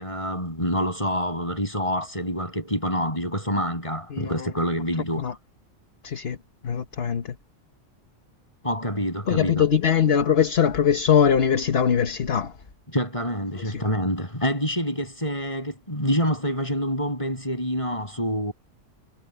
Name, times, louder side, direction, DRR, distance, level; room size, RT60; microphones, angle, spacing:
voice 1, 0.0-5.2 8.6-9.6 12.9-18.5, equal, 25° left, 7.4 m, -27 dB
voice 2, 4.1-4.5 5.2-5.3 6.0-6.4 6.6-7.4 9.3-12.6 13.5-13.8, left 8 dB, 60° left, 1.4 m, -22 dB
omnidirectional pair, 1.2 m